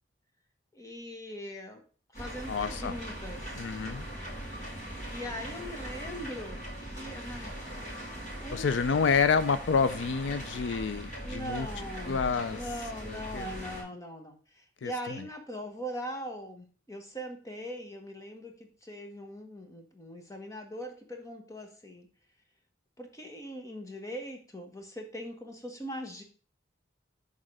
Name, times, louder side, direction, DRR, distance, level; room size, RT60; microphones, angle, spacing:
voice 1, 0.7-1.8 2.1-3.5 5.1-7.7 8.4-9.0 11.2-12.2 12.5-22.1 23.0-26.2, equal, 15° left, 1.1 m, -41 dB
sound 1, 2.1-13.8, right 1 dB, 40° left, 2.4 m, -40 dB
voice 2, 2.5-3.0 3.6-4.1 8.5-11.7 12.1-12.6 13.1-13.5 14.8-14.9, left 5 dB, 75° left, 0.4 m, -28 dB
6.4 x 3.7 x 6.1 m
head